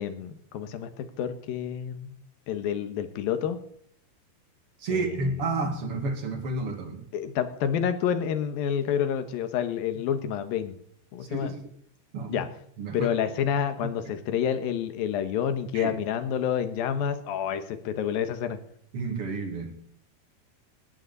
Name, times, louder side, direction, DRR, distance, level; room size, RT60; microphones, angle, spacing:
voice 1, 0.0-2.1 2.5-3.6 4.9-5.3 7.1-10.7 11.1-11.5 12.3-12.5 12.9-18.6, left 8 dB, 70° left, 10 dB, 3.0 m, -29 dB
voice 2, 4.8-7.1 11.3-11.6 12.1-12.4 12.8-13.1 13.8-13.9 15.7-15.9 18.9-19.7, right 3 dB, 40° right, 5 dB, 2.7 m, -30 dB
19.5 x 15.0 x 4.1 m, 0.65 s
omnidirectional pair, 4.5 m